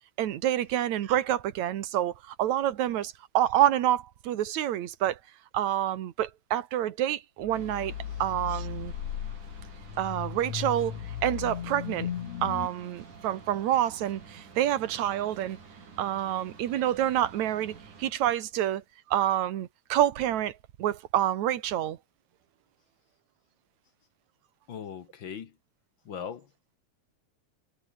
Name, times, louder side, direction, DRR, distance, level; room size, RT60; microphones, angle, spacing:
voice 1, 0.2-5.2 5.5-7.9 8.2-8.9 10.0-12.1 12.4-15.6 16.0-18.8 19.1-22.0, right 12 dB, 75° right, 2.6 m, -28 dB
sound 1, 7.4-12.7, left 10 dB, 70° left, 2.7 m, -36 dB
sound 2, 7.5-18.1, right 5 dB, 90° right, 6.4 m, -50 dB
voice 2, 24.7-25.5 26.0-26.5, left 7 dB, 50° left, 1.8 m, -39 dB
omnidirectional pair, 3.4 m